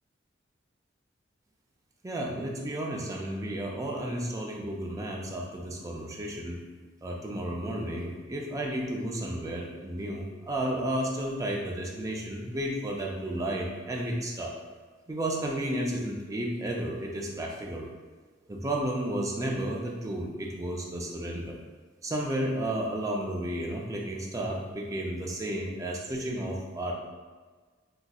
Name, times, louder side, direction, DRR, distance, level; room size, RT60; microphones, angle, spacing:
voice 1, 2.0-6.6 7.0-14.5 15.1-17.9 18.5-21.6 22.0-26.9, right 1 dB, 15° right, -1 dB, 0.4 m, -32 dB
3.9 x 2.5 x 2.3 m, 1.4 s
head